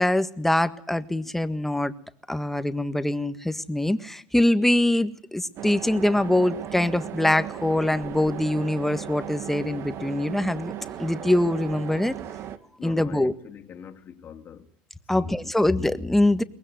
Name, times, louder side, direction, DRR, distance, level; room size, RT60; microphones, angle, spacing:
voice 1, 0.0-1.9 2.3-10.7 11.0-12.1 12.8-13.3 15.1-16.4, left 1 dB, 5° left, 1.6 m, -23 dB
sound 1, 5.6-12.6, right 10 dB, 50° right, 2.1 m, -37 dB
voice 2, 12.8-14.7 15.1-15.7, left 8 dB, 40° left, 2.7 m, -43 dB
23.0 x 19.5 x 9.4 m
supercardioid pair, 95°, 6 cm